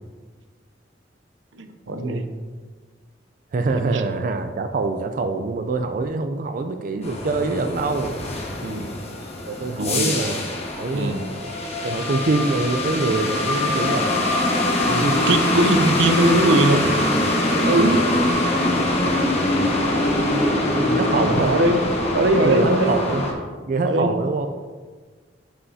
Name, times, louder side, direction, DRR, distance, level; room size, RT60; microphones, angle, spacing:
voice 1, 1.5-2.2 3.9-4.0 8.6-8.9 9.8-10.1 10.9-11.2 15.0-16.8 20.2-21.8 22.1-22.9 23.8-24.1, right 1 dB, 85° right, 8 dB, 0.7 m, -21 dB
voice 2, 3.5-8.2 9.4-10.4 10.7-11.2 11.8-14.2 14.9-15.1 17.6-18.1 20.9-21.6 22.4-23.3 23.7-24.5, right 3 dB, 50° right, 7 dB, 0.4 m, -24 dB
sound 1, 7.0-23.3, left 1 dB, 35° left, 1.2 m, -23 dB
11.0 x 5.6 x 2.7 m, 1.5 s
head